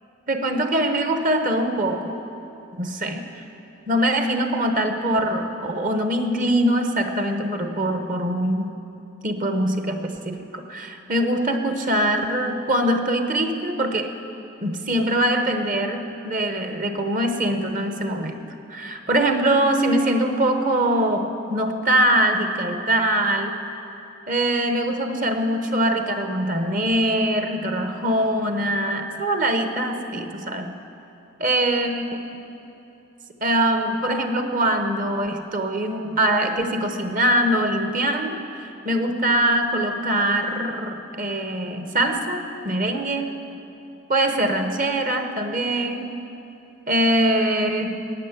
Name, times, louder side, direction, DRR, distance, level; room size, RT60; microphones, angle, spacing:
voice 1, 0.3-2.2 2.8-3.2 3.9-8.8 9.2-14.2 14.6-18.4 18.7-23.6 24.3-30.7 31.4-32.0 33.4-43.3 44.1-46.2 46.9-48.0, right 1 dB, 45° right, 6 dB, 1.0 m, -23 dB
15.0 x 8.9 x 9.7 m, 2.8 s
head